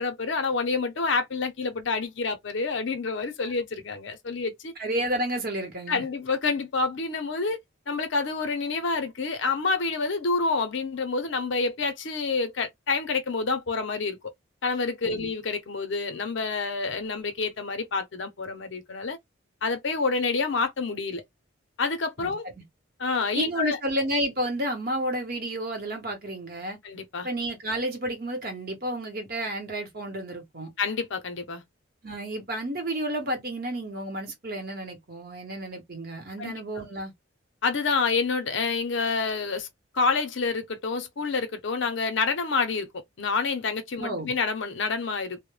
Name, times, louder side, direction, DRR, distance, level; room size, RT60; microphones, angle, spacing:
voice 1, 0.0-4.7 5.9-7.6 7.9-14.2 14.6-19.2 19.6-21.2 21.8-22.5 23.0-23.8 26.8-27.3 30.8-31.6 36.4-36.5 37.6-39.7 39.9-42.9 43.2-45.4, left 4 dB, 65° left, 0.6 m, -28 dB
voice 2, 4.8-6.0 15.0-15.3 22.2-22.3 23.4-26.8 27.2-30.7 32.0-37.1 44.0-44.3, right 1 dB, 45° right, 0.9 m, -31 dB
2.1 x 2.0 x 3.1 m
head